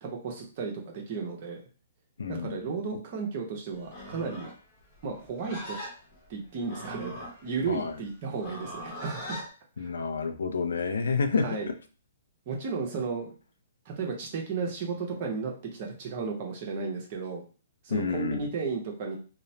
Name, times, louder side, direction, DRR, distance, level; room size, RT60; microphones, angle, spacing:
voice 1, 0.0-1.6 2.3-4.5 5.0-5.8 6.3-7.1 7.4-9.4 9.8-9.9 11.4-11.7 12.5-13.3 13.9-17.4 17.8-19.2, right 5 dB, 45° right, 0 dB, 0.8 m, -34 dB
voice 2, 2.2-2.6 7.7-7.9 9.8-11.5 17.9-18.5, left 5 dB, 85° left, 8 dB, 0.4 m, -29 dB
Livestock farm animals working animals, 3.8-9.5, equal, 30° left, 0.9 m, -41 dB
2.9 x 2.0 x 2.7 m, 0.37 s
hypercardioid pair, 145°, 0 cm